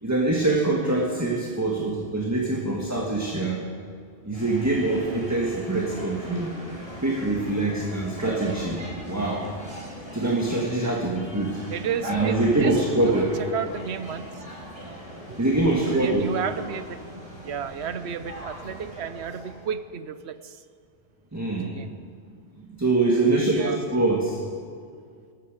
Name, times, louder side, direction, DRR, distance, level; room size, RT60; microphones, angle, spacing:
voice 1, 0.0-3.6 4.2-6.5 7.0-9.5 10.1-11.6 12.0-13.3 15.4-16.3 21.3-21.7 22.8-24.4, right 2 dB, 15° right, -2 dB, 1.6 m, -24 dB
sound 1, 4.3-19.7, equal, 30° right, 5.0 m, -39 dB
voice 2, 11.7-12.7 13.0-13.2 13.5-14.3 15.3-15.4 15.6-17.0 17.4-20.6 21.6-21.9 23.2-23.8, right 7 dB, 70° right, 12 dB, 1.0 m, -32 dB
18.5 x 14.5 x 5.1 m, 2.2 s
omnidirectional pair, 1.2 m